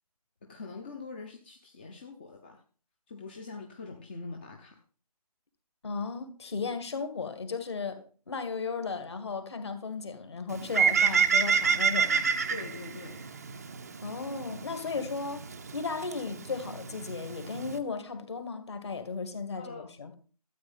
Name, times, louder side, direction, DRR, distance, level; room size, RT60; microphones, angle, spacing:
voice 1, 0.4-2.6 3.1-4.8 12.5-13.2 19.5-19.9, left 3 dB, 15° left, 0.8 m, -43 dB
voice 2, 5.8-12.3 14.0-15.5 15.7-20.1, left 4 dB, 45° left, 2.1 m, -35 dB
Bird, 10.5-17.8, right 6 dB, 25° right, 0.7 m, -29 dB
13.0 x 8.5 x 5.5 m
figure-of-eight pair, 155°, 20 cm